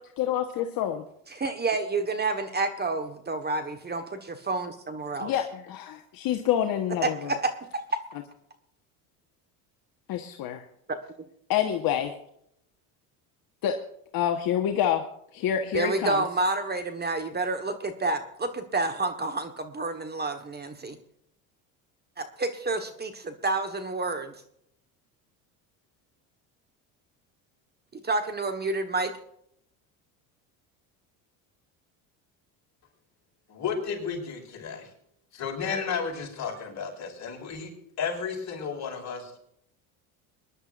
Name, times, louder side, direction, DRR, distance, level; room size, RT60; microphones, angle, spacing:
voice 1, 0.2-1.0 5.2-7.3 10.1-10.6 11.5-12.1 13.6-13.8 14.1-15.0 15.3-16.2, left 10 dB, 60° left, 4 dB, 1.4 m, -27 dB
voice 2, 1.3-5.3 7.0-7.8 10.9-11.0 15.7-21.0 22.2-24.3 27.9-29.1, right 3 dB, 25° right, 8 dB, 1.4 m, -29 dB
voice 3, 33.5-34.9 35.3-37.7 38.0-39.4, left 6 dB, 45° left, 0 dB, 5.9 m, -33 dB
23.5 x 11.0 x 2.6 m, 0.73 s
supercardioid pair, 100°, 40 cm